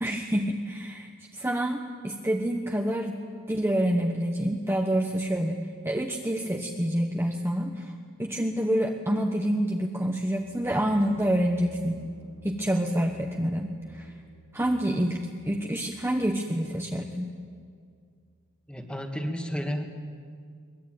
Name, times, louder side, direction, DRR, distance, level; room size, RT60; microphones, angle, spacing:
voice 1, 0.0-3.2 3.5-7.9 8.2-12.0 12.4-14.1 14.5-15.2 15.4-17.3, equal, 10° right, 2 dB, 1.1 m, -27 dB
sound 1, 10.2-17.9, left 1 dB, 75° left, 3.9 m, -53 dB
voice 2, 18.7-19.8, equal, 5° left, 5 dB, 1.8 m, -32 dB
23.0 x 21.0 x 9.2 m, 2.1 s
head